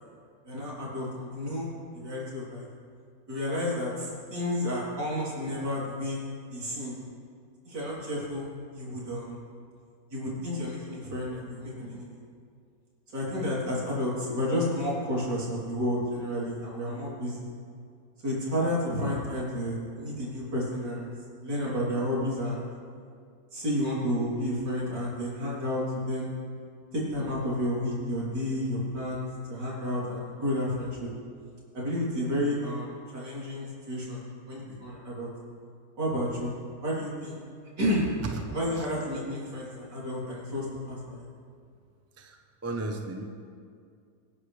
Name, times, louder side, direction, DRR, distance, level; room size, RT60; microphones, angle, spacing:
voice 1, 0.5-2.7 3.3-6.2 6.5-7.0 7.6-8.5 8.7-9.4 10.1-12.2 13.1-17.5 18.2-21.1 21.4-22.7 23.5-26.3 26.9-31.1 31.7-35.3 36.0-36.5 36.8-37.4 37.8-38.1 38.5-41.3, left 1 dB, 60° right, -6 dB, 4.1 m, -31 dB
voice 2, 38.2-38.9 42.2-43.2, right 2 dB, 15° right, 3 dB, 0.4 m, -35 dB
25.0 x 10.0 x 3.4 m, 2.2 s
omnidirectional pair, 2.1 m